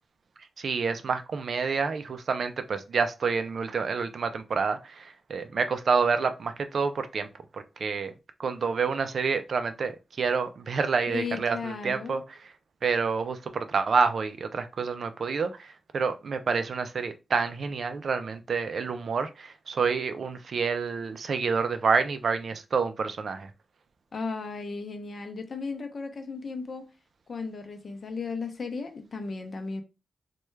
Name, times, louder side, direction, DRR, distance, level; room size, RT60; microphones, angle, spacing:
voice 1, 0.6-7.3 7.5-8.1 8.4-12.5 12.8-23.5, right 5 dB, 50° right, 0.3 m, -28 dB
voice 2, 11.1-12.2 24.1-26.8 27.3-29.8, left 4 dB, 45° left, 0.6 m, -35 dB
3.2 x 2.2 x 3.1 m
wide cardioid pair, 175°, 0 cm